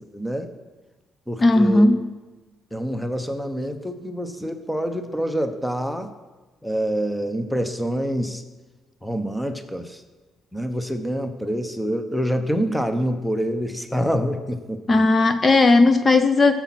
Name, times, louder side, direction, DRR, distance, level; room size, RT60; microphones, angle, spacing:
voice 1, 0.1-0.5 1.3-1.9 2.7-6.1 6.6-8.4 9.0-10.0 10.5-15.1, equal, 5° left, 8 dB, 0.9 m, -26 dB
voice 2, 1.4-2.1 14.9-16.5, left 2 dB, 25° left, 10 dB, 0.6 m, -16 dB
17.0 x 7.2 x 5.9 m, 1.3 s
cardioid pair, 110°, 0 cm